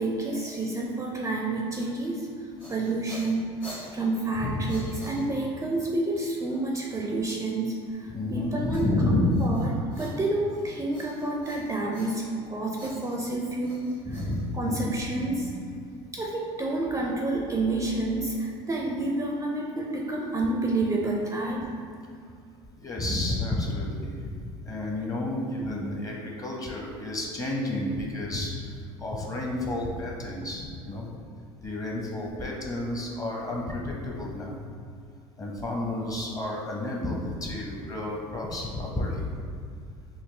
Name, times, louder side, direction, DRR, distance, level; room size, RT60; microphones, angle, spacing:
voice 1, 0.0-2.3 2.7-3.6 3.9-8.9 9.4-13.9 14.5-15.6 16.1-21.6, right 2 dB, 20° right, -1 dB, 0.4 m, -29 dB
sound 1, 2.4-5.7 8.7-10.6 10.9-12.4 12.7-15.0, left 1 dB, 90° left, 1.5 m, -47 dB
voice 2, 4.4-4.8 8.1-9.4 14.0-15.0 22.8-24.4 24.6-28.7 29.0-31.1 31.6-34.6 35.4-39.2, left 1 dB, 25° left, -2 dB, 0.8 m, -30 dB
4.1 x 2.3 x 3.2 m, 2.3 s
hypercardioid pair, 80°, 15 cm